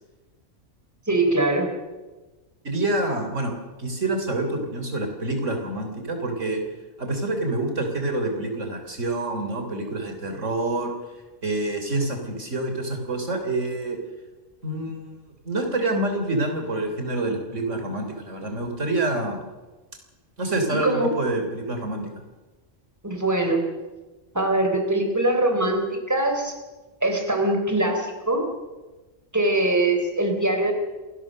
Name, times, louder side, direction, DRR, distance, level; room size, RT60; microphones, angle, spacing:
voice 1, 1.1-1.7 20.7-21.2 23.0-23.6 24.3-26.5 27.0-28.5 29.3-30.7, right 2 dB, 15° right, 4 dB, 4.0 m, -22 dB
voice 2, 2.6-3.5 3.8-6.6 7.0-10.9 11.4-14.0 14.6-15.1 15.4-19.5 20.4-22.1, right 2 dB, 70° right, 4 dB, 4.0 m, -27 dB
28.0 x 19.5 x 6.6 m, 1.2 s
omnidirectional pair, 1.3 m